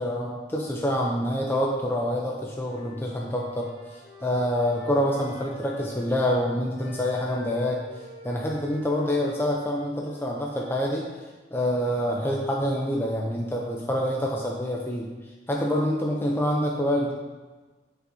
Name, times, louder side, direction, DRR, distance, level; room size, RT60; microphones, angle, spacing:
voice 1, 0.0-7.8 8.2-11.1 11.5-17.1, equal, 10° left, -2 dB, 0.5 m, -26 dB
Wind instrument woodwind instrument, 2.5-6.4 6.7-11.1, left 1 dB, 60° left, 2.3 m, -47 dB
9.6 x 5.6 x 2.7 m, 1.3 s
head